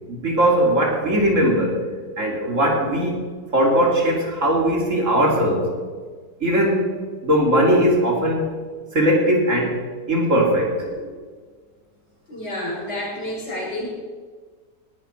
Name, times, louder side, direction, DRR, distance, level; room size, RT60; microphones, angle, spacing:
voice 1, 0.1-1.8 2.2-3.1 3.5-5.7 6.4-6.8 7.2-8.5 8.9-9.8 10.1-11.1, equal, 45° right, 0 dB, 3.2 m, -19 dB
voice 2, 12.3-13.9, left 1 dB, 80° left, -6 dB, 5.9 m, -29 dB
19.0 x 11.5 x 4.5 m, 1.5 s
omnidirectional pair, 1.9 m